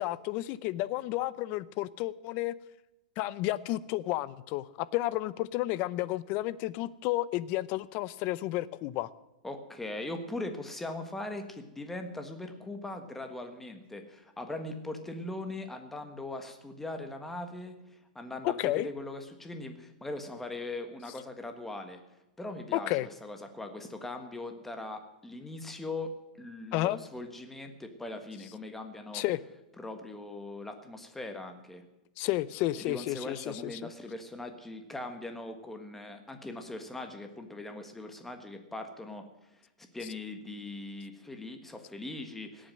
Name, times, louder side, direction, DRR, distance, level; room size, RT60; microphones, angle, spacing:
voice 1, 0.0-2.5 3.2-9.1 18.4-18.9 22.7-23.1 26.7-27.0 29.1-29.4 32.2-33.7, left 16 dB, 35° left, 0.6 m, -31 dB
voice 2, 9.4-22.0 22.4-29.2 29.8-31.8 32.8-42.7, left 2 dB, 5° left, 1.5 m, -40 dB
18.0 x 8.8 x 7.6 m
supercardioid pair, 155°, 5 cm